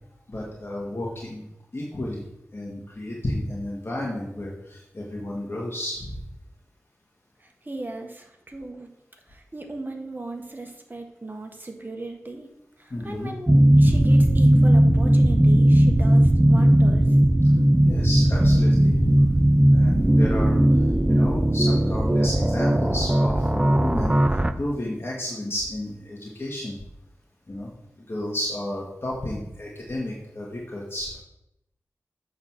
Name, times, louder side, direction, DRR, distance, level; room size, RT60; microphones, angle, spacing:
voice 1, 0.3-1.5 1.7-2.3 2.5-6.2 12.9-13.3 17.8-19.4 19.7-20.8 21.1-26.8 27.5-27.7 28.0-31.2, left 1 dB, 45° left, -4 dB, 1.8 m, -31 dB
voice 2, 7.4-8.9 9.3-12.5 12.8-17.1, right 2 dB, 35° right, 3 dB, 1.4 m, -37 dB
sound 1, 13.5-24.5, right 1 dB, 15° right, 0.5 m, -18 dB
7.5 x 4.0 x 6.1 m, 0.82 s
wide cardioid pair, 50°, 6 cm